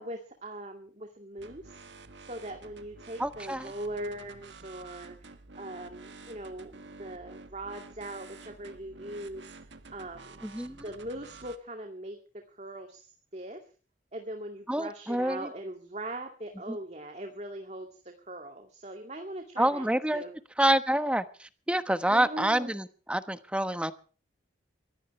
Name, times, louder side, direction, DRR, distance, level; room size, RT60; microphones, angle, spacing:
voice 1, 0.0-1.8 2.3-9.5 9.9-10.4 10.8-13.7 14.1-19.9 20.1-20.3 22.1-22.7, right 1 dB, 35° right, 4 dB, 2.4 m, -41 dB
sound 1, 1.4-11.6, right 3 dB, 70° right, 1.6 m, -50 dB
voice 2, 3.2-3.7 10.4-10.8 14.7-15.5 16.7-16.8 19.6-20.2 20.6-23.9, right 1 dB, 5° right, 10 dB, 1.1 m, -27 dB
24.0 x 17.5 x 3.3 m, 0.38 s
head